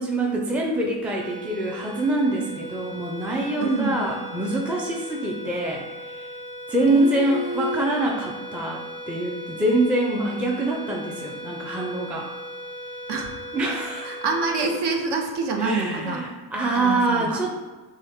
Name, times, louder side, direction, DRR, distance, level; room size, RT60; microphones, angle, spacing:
voice 1, 0.0-6.3 6.7-12.3 13.5-14.2 15.6-17.5, right 1 dB, 5° right, -1 dB, 0.5 m, -25 dB
sound 1, 1.0-15.6, equal, 90° right, 0.8 m, -38 dB
voice 2, 3.6-4.0 6.9-7.8 13.1-13.4 14.0-16.2 16.7-17.4, right 3 dB, 60° right, 2 dB, 1.0 m, -26 dB
6.3 x 2.4 x 3.5 m, 1.3 s
cardioid pair, 105°, 47 cm